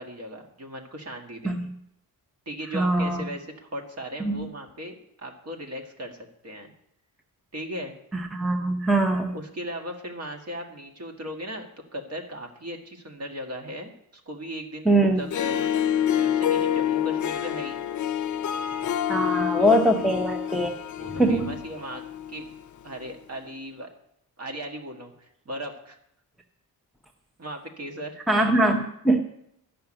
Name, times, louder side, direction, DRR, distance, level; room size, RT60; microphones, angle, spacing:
voice 1, 0.0-1.6 2.5-6.2 6.4-6.7 7.5-7.9 9.3-11.7 11.9-13.9 14.3-15.7 16.1-17.8 19.6-19.8 21.0-22.5 22.8-23.9 24.4-26.0 27.4-28.2, equal, 40° right, 2 dB, 1.8 m, -37 dB
voice 2, 2.7-3.2 4.2-4.5 8.1-9.3 14.8-15.2 19.1-20.7 21.1-21.6 28.3-29.2, right 1 dB, ahead, 4 dB, 0.7 m, -22 dB
Harp, 15.2-22.6, left 10 dB, 55° left, 0.6 m, -27 dB
13.0 x 5.8 x 8.8 m, 0.77 s
wide cardioid pair, 175°, 36 cm